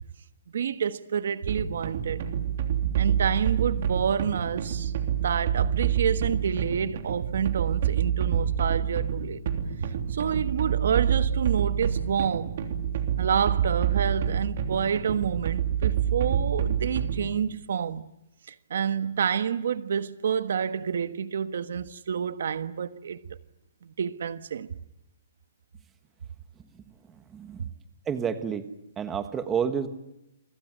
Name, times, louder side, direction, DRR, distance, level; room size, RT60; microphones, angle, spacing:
voice 1, 0.5-2.2 3.0-4.9 5.2-9.4 9.8-12.6 13.2-18.1 18.5-23.4 23.8-24.8, right 7 dB, 65° right, 1.4 m, -28 dB
sound 1, 1.5-17.4, right 9 dB, 45° right, 3.2 m, -27 dB
voice 2, 27.1-27.7 28.1-28.6 29.0-29.9, right 7 dB, 10° right, 1.4 m, -30 dB
29.0 x 24.0 x 7.6 m
hypercardioid pair, 170°, 0 cm